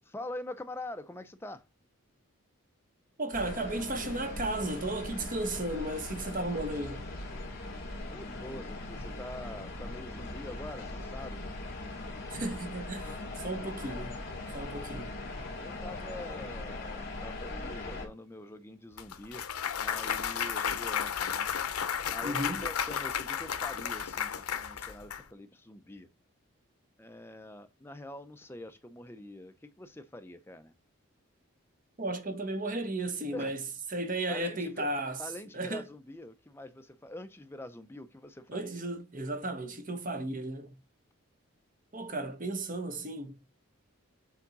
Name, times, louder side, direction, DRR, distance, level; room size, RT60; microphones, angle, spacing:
voice 1, 0.0-1.7 8.1-11.4 15.6-19.5 19.8-21.5 22.1-26.1 27.0-30.7 33.3-33.5 34.3-34.9 35.2-38.8, left 1 dB, 10° left, 0.6 m, -45 dB
voice 2, 3.2-7.1 12.3-14.2 14.5-15.2 22.2-22.6 32.0-33.6 33.9-35.2 35.5-35.9 38.5-40.8 41.9-43.4, right 2 dB, 35° right, 1.1 m, -34 dB
sound 1, 3.3-18.1, left 2 dB, 45° left, 2.5 m, -40 dB
Clapping / Cheering / Applause, 19.0-25.2, left 8 dB, 90° left, 0.7 m, -33 dB
7.3 x 3.6 x 4.0 m
head